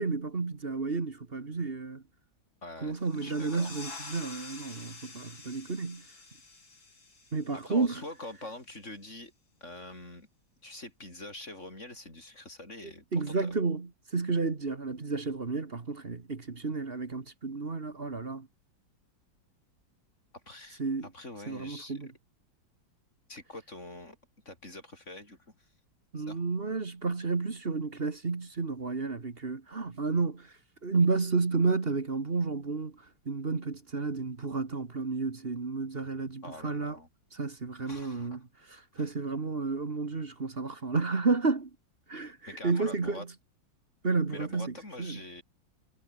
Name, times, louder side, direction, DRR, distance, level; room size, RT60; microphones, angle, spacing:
voice 1, 0.0-2.0 2.8-6.0 7.3-8.0 13.1-18.5 20.8-21.1 21.5-22.1 26.1-30.5 30.8-37.0 37.3-38.4 38.7-41.7 42.1-43.3 44.0-45.2, right 4 dB, 30° right, 1.7 m, -31 dB
voice 2, 2.6-3.7 7.5-9.3 9.6-10.3 10.6-13.6 20.5-20.8 21.1-22.1 23.3-24.2 24.5-25.4 26.2-26.4 36.4-37.1 37.8-38.4 39.0-39.1 42.5-43.3 44.3-45.4, left 2 dB, 35° left, 7.7 m, -45 dB
sound 1, 3.0-8.3, left 3 dB, 75° left, 6.2 m, -48 dB
omnidirectional pair, 2.1 m